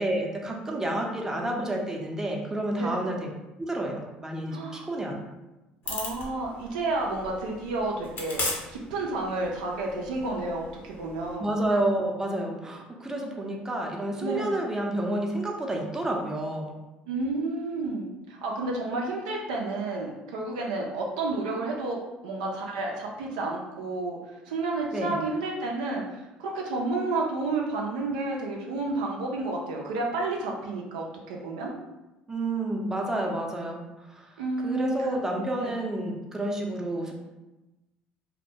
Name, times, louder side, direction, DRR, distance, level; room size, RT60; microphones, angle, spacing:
voice 1, 0.0-3.3 3.6-5.2 11.4-16.7 24.9-25.2 32.3-34.3 34.6-37.1, right 1 dB, 10° right, 0 dB, 0.5 m, -30 dB
voice 2, 4.5-4.9 5.9-11.5 14.2-14.6 17.1-24.2 24.5-31.7 34.4-35.1 35.6-35.8, right 2 dB, 85° right, -1 dB, 0.4 m, -31 dB
sound 1, 5.8-11.4, left 2 dB, 50° left, 0.7 m, -38 dB
2.1 x 2.1 x 2.7 m, 1.0 s
hypercardioid pair, 65°, 4 cm